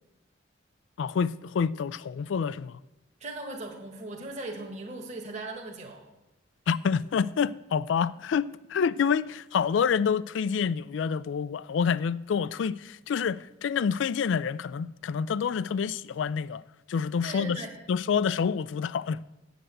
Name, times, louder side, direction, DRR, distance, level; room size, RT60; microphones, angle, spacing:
voice 1, 1.0-2.7 6.7-12.8 13.1-16.6 16.9-17.6 17.9-19.2, left 6 dB, 75° left, 0.3 m, -27 dB
voice 2, 3.2-6.1 17.2-17.7, right 2 dB, 40° right, 1.3 m, -38 dB
7.8 x 7.7 x 7.8 m
head